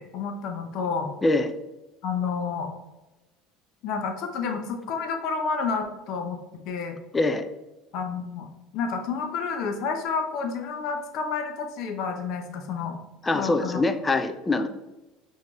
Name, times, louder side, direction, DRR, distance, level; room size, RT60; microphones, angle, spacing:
voice 1, 0.0-1.1 2.0-2.7 3.8-6.4 6.7-7.0 7.9-8.5 8.7-13.0 13.3-13.8, left 5 dB, 60° left, 5 dB, 0.6 m, -30 dB
voice 2, 7.1-7.5 13.2-14.7, left 2 dB, 20° left, 8 dB, 0.4 m, -23 dB
5.8 x 2.7 x 2.3 m, 1.1 s
hypercardioid pair, 70°, 0 cm